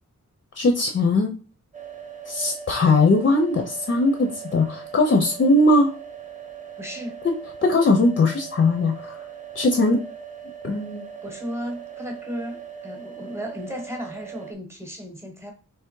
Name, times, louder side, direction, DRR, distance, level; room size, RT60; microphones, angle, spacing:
voice 1, 0.6-1.3 2.3-5.9 7.2-7.3 7.6-9.2 9.5-10.0 10.6-11.0, left 2 dB, 40° left, 4 dB, 0.6 m, -20 dB
sound 1, 1.7-14.5, right 7 dB, 25° right, 0.6 m, -40 dB
voice 2, 6.8-7.2 11.2-15.5, equal, 10° right, 2 dB, 1.0 m, -34 dB
3.4 x 3.1 x 4.6 m, 0.38 s
wide cardioid pair, 180°, 32 cm